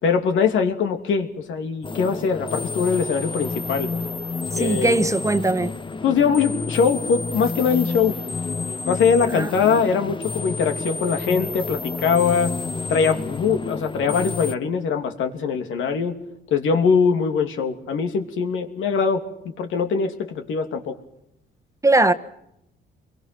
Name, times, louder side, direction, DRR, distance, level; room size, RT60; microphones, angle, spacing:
voice 1, 0.0-3.9 4.5-5.0 6.0-8.2 8.9-12.5 12.9-16.1 16.5-21.0, left 6 dB, 80° left, 2.9 m, -22 dB
sound 1, 1.8-14.5, left 4 dB, 25° left, 0.9 m, -30 dB
voice 2, 4.5-5.7 9.3-9.8 21.8-22.1, right 2 dB, 15° right, 1.4 m, -20 dB
27.5 x 23.0 x 6.0 m
cardioid pair, 90°, 20 cm